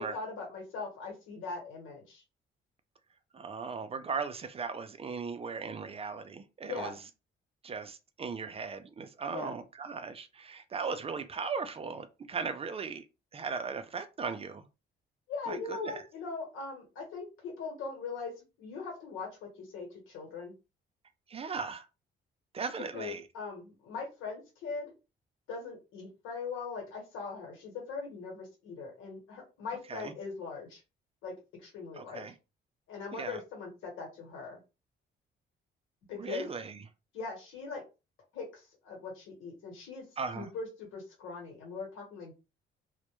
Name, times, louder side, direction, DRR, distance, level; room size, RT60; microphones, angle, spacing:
voice 1, 0.0-2.2 6.6-7.0 9.3-9.5 15.3-18.3 18.6-20.5 22.9-24.9 25.5-30.8 31.2-31.3 31.6-32.2 32.9-34.6 36.1-36.5 37.1-37.8 38.3-40.0 40.3-42.3, left 4 dB, 90° left, 1.1 m, -40 dB
voice 2, 3.3-6.9 7.6-13.0 13.3-14.6 15.5-16.0 21.3-21.9 22.5-23.2 29.9-30.1 32.0-32.3 33.1-33.4 36.1-36.8 40.2-40.5, right 5 dB, 30° right, 0.3 m, -37 dB
2.1 x 2.1 x 2.9 m
cardioid pair, 90°, 20 cm